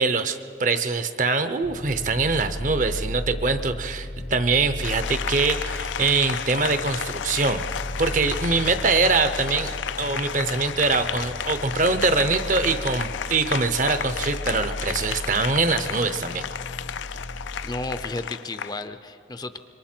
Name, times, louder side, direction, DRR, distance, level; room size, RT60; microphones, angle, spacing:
voice 1, 0.0-7.6 8.0-16.4, right 4 dB, 40° right, 10 dB, 0.7 m, -23 dB
sound 1, 1.6-18.1, equal, 60° left, 0.8 m, -35 dB
Applause, 4.8-18.8, left 8 dB, 80° left, 0.4 m, -33 dB
voice 2, 17.6-19.6, left 2 dB, 20° left, 10 dB, 0.5 m, -33 dB
26.5 x 22.5 x 4.4 m, 2.5 s
head